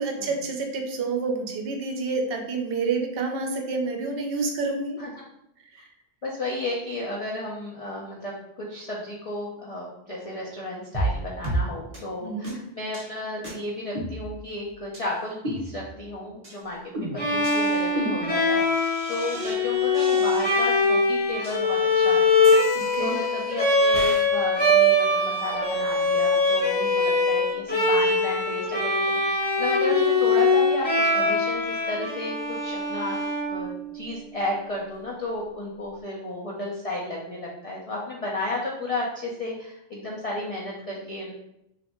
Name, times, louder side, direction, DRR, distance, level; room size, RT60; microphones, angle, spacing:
voice 1, 0.0-5.0 5.7-5.8 12.2-12.6 22.7-23.2, right 4 dB, 60° right, 3 dB, 0.7 m, -28 dB
voice 2, 6.2-33.2 33.5-41.3, left 2 dB, 50° left, -4 dB, 0.4 m, -33 dB
sound 1, 10.9-11.2 11.4-11.6 11.9-12.0 12.4-12.5 12.9-13.1 13.4-13.5 13.9-14.6 14.9-15.0 15.4-16.1 16.4-16.6 16.9-19.6 19.9-20.9 21.4-21.6 22.4-23.4 23.9-24.3, right 1 dB, 35° right, 0.8 m, -33 dB
Bowed string instrument, 17.2-34.1, left 2 dB, 10° left, 0.8 m, -22 dB
3.1 x 2.5 x 3.0 m, 0.81 s
omnidirectional pair, 1.2 m